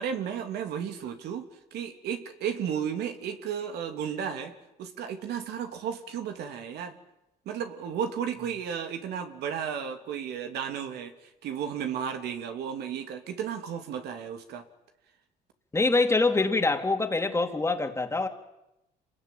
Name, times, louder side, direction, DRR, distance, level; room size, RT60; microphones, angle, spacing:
voice 1, 0.0-7.0 7.4-14.7, right 8 dB, 75° right, 6 dB, 2.9 m, -34 dB
voice 2, 15.7-18.3, left 3 dB, 15° left, 5 dB, 2.9 m, -25 dB
27.0 x 20.5 x 9.2 m, 0.91 s
cardioid pair, 110°, 17 cm